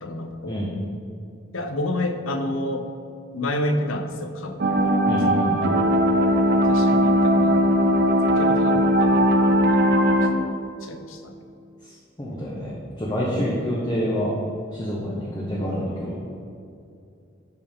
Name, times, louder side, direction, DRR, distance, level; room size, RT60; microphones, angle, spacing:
voice 1, 0.0-0.6 1.5-2.9 3.3-5.8 6.6-7.6 8.4-9.3 9.7-9.8 10.4-10.5 10.8-11.3 13.3-13.6, left 1 dB, 75° left, 6 dB, 0.8 m, -30 dB
sound 1, 4.6-10.3, equal, 50° right, 0.7 m, -19 dB
voice 2, 5.1-5.8 11.8-12.7 13.0-14.3 14.7-16.2, equal, 20° left, -6 dB, 1.0 m, -27 dB
12.5 x 4.6 x 3.7 m, 2.5 s
head